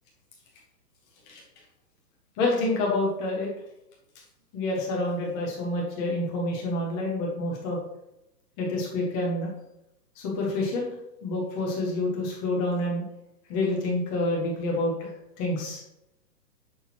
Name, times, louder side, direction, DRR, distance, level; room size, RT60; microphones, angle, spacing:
voice 1, 2.4-3.5 4.5-7.8 8.6-9.5 10.2-10.9 11.2-13.0 13.5-15.1 15.4-15.8, left 2 dB, 10° left, -2 dB, 0.5 m, -28 dB
8.1 x 6.1 x 2.9 m, 0.87 s
hypercardioid pair, 145°, 49 cm